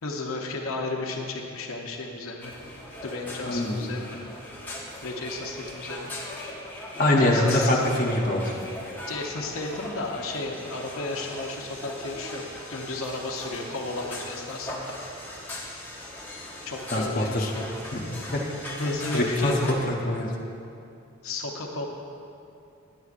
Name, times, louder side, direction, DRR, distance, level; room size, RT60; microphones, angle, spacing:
voice 1, 0.0-2.5 3.0-4.2 5.0-6.1 7.1-7.8 9.1-12.4 12.7-14.9 16.6-17.8 18.8-19.8 21.2-21.9, left 2 dB, 85° left, 1 dB, 0.7 m, -34 dB
sound 1, 2.4-19.7, left 1 dB, 10° left, 0.7 m, -39 dB
voice 2, 3.4-3.8 7.0-8.5 16.9-17.5 17.9-18.0 18.3-18.4 18.8-20.3, left 1 dB, 40° left, -2 dB, 0.8 m, -24 dB
9.5 x 8.1 x 2.5 m, 2.6 s
head